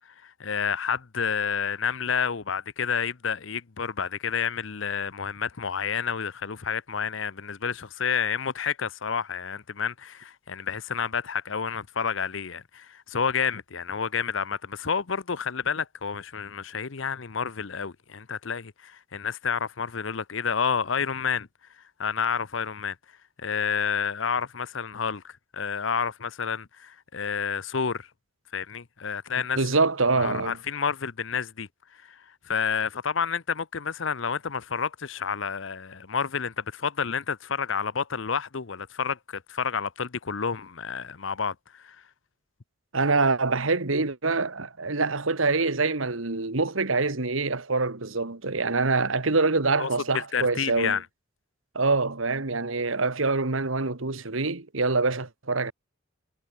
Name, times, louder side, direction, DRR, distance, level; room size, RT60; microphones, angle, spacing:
voice 1, 0.2-21.5 22.0-23.0 23.4-28.1 28.5-29.6 30.2-31.7 32.0-32.2 32.4-42.0 49.8-51.0, left 6 dB, 65° left, 0.8 m, -29 dB
voice 2, 29.6-30.6 42.9-51.0 51.8-55.7, right 3 dB, 75° right, 1.7 m, -25 dB
head